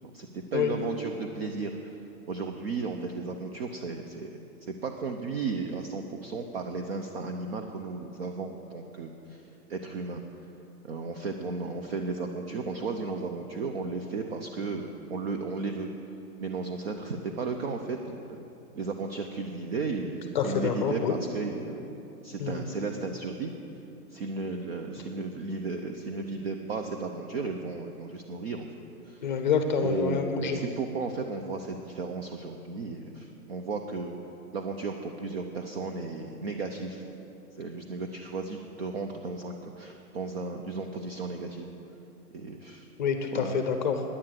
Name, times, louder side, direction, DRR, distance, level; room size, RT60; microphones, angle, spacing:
voice 1, 0.1-1.9 2.3-9.4 9.7-10.2 10.8-15.9 16.4-18.4 18.8-21.9 22.2-23.5 24.1-28.7 29.1-29.2 29.8-34.1 34.5-37.0 37.6-41.7 42.3-42.9 43.3-43.5, right 4 dB, 40° right, 5 dB, 0.6 m, -34 dB
voice 2, 20.3-21.1 22.4-22.6 29.2-30.6 43.0-44.0, left 6 dB, 30° left, 6 dB, 0.6 m, -27 dB
9.9 x 9.8 x 7.5 m, 3.0 s
hypercardioid pair, 160°, 47 cm